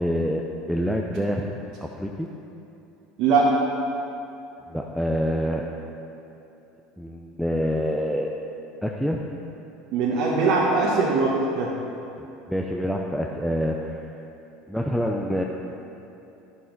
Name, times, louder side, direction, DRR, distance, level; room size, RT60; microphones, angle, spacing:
voice 1, 0.0-1.5 1.8-2.3 4.7-5.7 7.0-8.3 8.8-9.2 12.2-14.1 14.7-15.4, equal, ahead, 0 dB, 0.6 m, -26 dB
voice 2, 3.2-3.5 9.9-11.7, right 3 dB, 65° right, -4 dB, 1.3 m, -21 dB
10.0 x 7.4 x 4.1 m, 2.8 s
hypercardioid pair, 85°, 0 cm